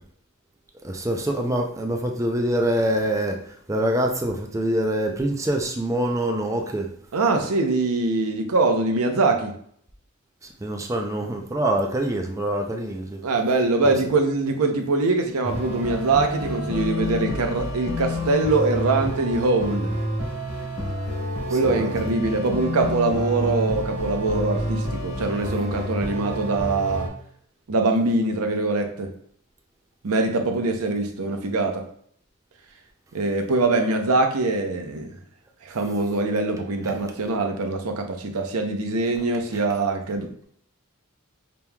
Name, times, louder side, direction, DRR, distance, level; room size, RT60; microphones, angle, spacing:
voice 1, 0.8-3.4 3.7-6.9 10.6-13.2 13.8-13.9 21.6-21.9, right 1 dB, 15° right, 2 dB, 0.4 m, -25 dB
voice 2, 7.1-9.5 13.2-19.9 21.5-27.1 27.7-29.1 30.0-31.9 33.1-35.1 35.6-40.5, right 3 dB, 90° right, 5 dB, 0.7 m, -23 dB
sound 1, 15.4-27.1, left 1 dB, 85° left, 1.3 m, -29 dB
5.3 x 2.9 x 2.3 m, 0.63 s
head